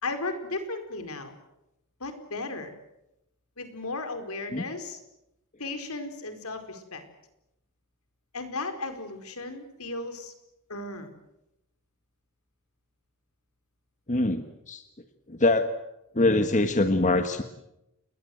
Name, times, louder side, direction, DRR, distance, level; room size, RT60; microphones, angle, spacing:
voice 1, 0.0-1.3 2.0-2.7 3.6-5.0 5.6-7.0 8.3-10.3 10.7-11.1, left 3 dB, 70° left, 7 dB, 4.6 m, -35 dB
voice 2, 14.1-14.8 15.3-15.7 16.1-17.4, left 2 dB, 35° left, 8 dB, 1.5 m, -23 dB
30.0 x 21.5 x 7.9 m, 0.87 s
head